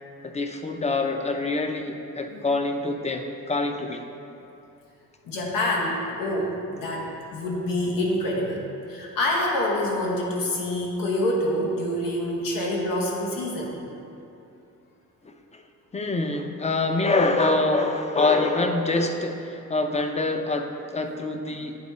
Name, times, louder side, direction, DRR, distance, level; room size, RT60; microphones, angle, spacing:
voice 1, 0.2-4.0 15.2-15.6 15.9-21.8, left 2 dB, 20° left, 5 dB, 0.5 m, -25 dB
voice 2, 5.2-7.1 7.3-8.6 8.9-13.8, left 1 dB, 90° left, -2 dB, 1.1 m, -26 dB
9.6 x 3.5 x 4.2 m, 2.7 s
cardioid pair, 90°, 32 cm